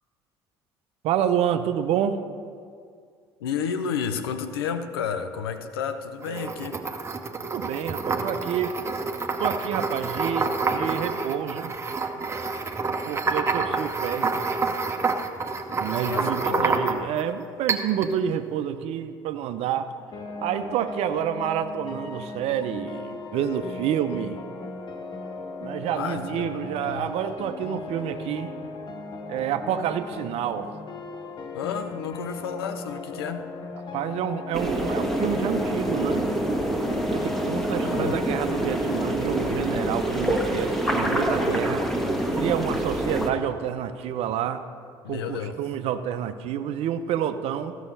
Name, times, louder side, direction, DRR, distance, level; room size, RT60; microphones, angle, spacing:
voice 1, 1.0-2.2 6.3-6.6 7.4-8.8 9.4-11.8 13.1-14.4 15.8-19.9 20.4-24.4 25.6-28.5 29.3-30.7 33.9-36.3 37.1-41.8 42.3-44.6 45.1-47.8, right 9 dB, 50° right, 10 dB, 0.6 m, -28 dB
voice 2, 3.4-6.8 16.0-16.8 25.9-27.0 31.5-33.5 37.8-38.2 45.0-45.6, left 7 dB, 75° left, 9 dB, 0.7 m, -31 dB
sound 1, 6.2-17.2 17.7-18.1, right 4 dB, 20° right, 0.9 m, -28 dB
sound 2, 20.1-39.1, left 3 dB, 35° left, 1.0 m, -37 dB
sound 3, 34.5-43.3, right 1 dB, ahead, 1.4 m, -26 dB
14.5 x 6.3 x 5.4 m, 2.3 s
figure-of-eight pair, 60°, 13 cm